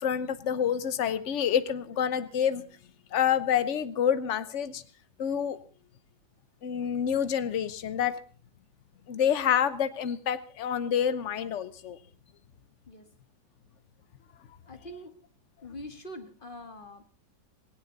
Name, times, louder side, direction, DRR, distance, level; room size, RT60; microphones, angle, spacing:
voice 1, 0.0-2.6 3.1-4.8 5.2-5.6 6.6-8.1 9.1-12.0, left 8 dB, 50° left, 13 dB, 1.0 m, -27 dB
voice 2, 14.7-15.1 15.6-17.0, equal, 30° left, 7 dB, 1.7 m, -43 dB
18.0 x 17.0 x 4.0 m, 0.40 s
omnidirectional pair, 2.0 m